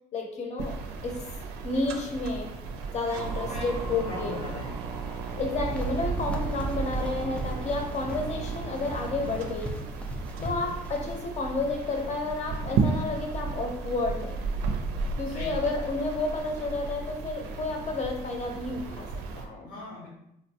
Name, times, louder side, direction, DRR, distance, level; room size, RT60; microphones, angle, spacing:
voice 1, 0.1-1.2 1.6-2.5 2.9-4.4 5.4-9.8 10.4-14.4 15.2-19.1 19.4-19.7, left 3 dB, 40° left, 3 dB, 0.7 m, -31 dB
sound 1, 0.6-19.5, right 4 dB, 90° right, 0.4 m, -34 dB
sound 2, 3.1-7.6 8.4-8.5 9.9-10.0, right 4 dB, 15° right, 0.7 m, -37 dB
voice 2, 3.4-5.0 10.4-10.7 15.2-15.7 19.6-20.1, left 2 dB, 85° left, -6 dB, 1.1 m, -40 dB
sound 3, 5.7-11.2, right 1 dB, 5° left, 0.3 m, -39 dB
3.8 x 2.1 x 2.8 m, 0.80 s
cardioid pair, 110°, 17 cm